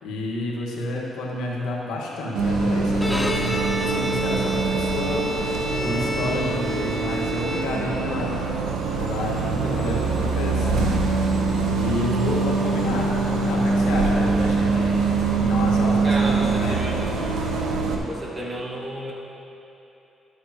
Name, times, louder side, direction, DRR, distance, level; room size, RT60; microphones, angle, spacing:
voice 1, 0.0-8.4 9.0-11.2 11.6-15.0 15.3-16.8, left 2 dB, 90° left, -4 dB, 1.5 m, -30 dB
Bus, 2.4-18.0, right 3 dB, 90° right, 1.0 m, -23 dB
Bowed string instrument, 2.9-8.2, equal, 5° left, 0.8 m, -29 dB
voice 2, 16.0-17.0 18.0-19.1, right 1 dB, 35° right, -3 dB, 1.6 m, -31 dB
13.0 x 8.2 x 3.0 m, 2.9 s
cardioid pair, 90°, 0 cm